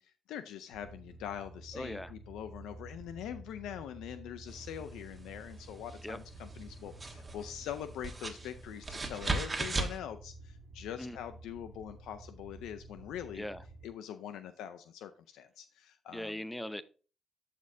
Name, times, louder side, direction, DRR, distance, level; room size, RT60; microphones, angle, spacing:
voice 1, 0.0-13.5 13.8-16.3, left 10 dB, 85° left, 0.4 m, -43 dB
sound 1, 0.7-13.9, right 2 dB, 70° right, 1.5 m, -51 dB
voice 2, 1.7-2.1 6.0-6.2 11.0-11.2 13.3-13.6 16.1-16.8, left 1 dB, 10° left, 0.6 m, -39 dB
sound 2, 4.5-10.0, right 3 dB, 25° right, 1.3 m, -39 dB
12.0 x 4.3 x 2.7 m
cardioid pair, 90°, 0 cm